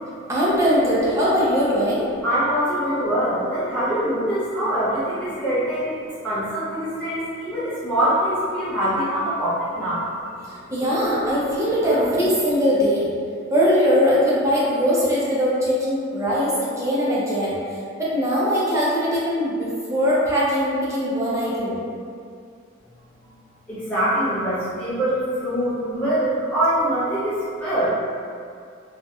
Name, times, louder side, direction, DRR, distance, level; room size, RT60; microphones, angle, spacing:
voice 1, 0.3-2.0 10.7-13.1 13.5-17.6 18.0-21.8, equal, 15° right, -8 dB, 0.5 m, -21 dB
voice 2, 2.2-10.1 10.8-10.9 11.6-12.0 23.7-27.9, right 1 dB, 5° left, -13 dB, 0.8 m, -24 dB
2.8 x 2.1 x 2.2 m, 2.3 s
head